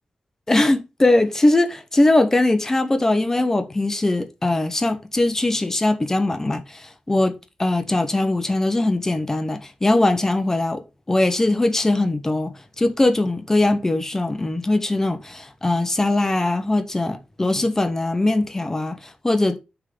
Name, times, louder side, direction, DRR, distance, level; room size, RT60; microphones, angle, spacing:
voice 1, 0.5-10.8 11.1-19.6, left 2 dB, 20° left, 0.9 m, -21 dB
6.3 x 3.7 x 5.2 m
wide cardioid pair, 160°, 3 cm